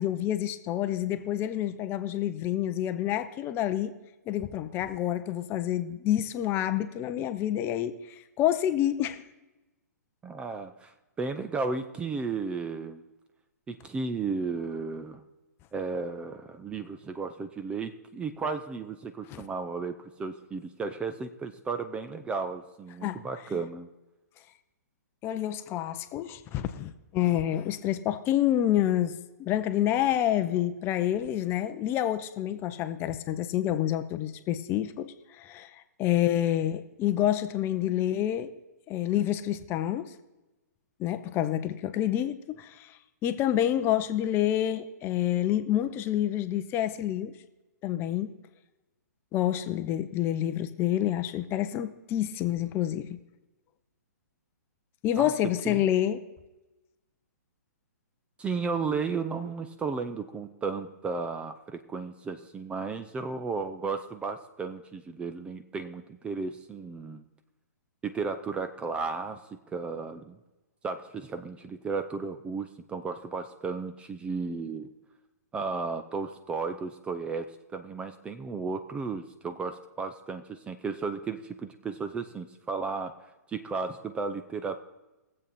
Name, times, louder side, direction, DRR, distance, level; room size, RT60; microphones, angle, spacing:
voice 1, 0.0-3.9 4.3-7.9 8.4-9.2 19.3-19.4 23.0-23.2 25.2-29.1 29.4-35.7 36.0-38.5 38.9-40.1 41.0-42.9 43.2-47.3 47.8-48.3 49.3-53.2 55.0-56.2, left 12 dB, 25° left, 10 dB, 0.7 m, -28 dB
voice 2, 10.2-13.0 13.7-15.2 15.7-23.9 55.2-55.3 55.6-55.8 58.4-67.2 68.0-70.4 70.8-74.9 75.5-84.8, right 4 dB, 10° right, 9 dB, 0.5 m, -34 dB
20.5 x 7.6 x 4.1 m, 1.1 s
hypercardioid pair, 125°, 9 cm